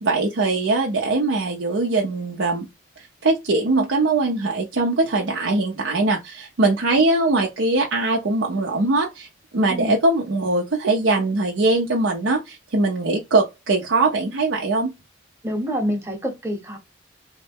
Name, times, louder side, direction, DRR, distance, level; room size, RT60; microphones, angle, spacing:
voice 1, 0.0-2.7 3.2-9.3 9.5-14.9, right 2 dB, 85° right, 0.6 m, -21 dB
voice 2, 15.4-16.8, equal, 15° right, 0.8 m, -26 dB
3.1 x 2.1 x 3.4 m
head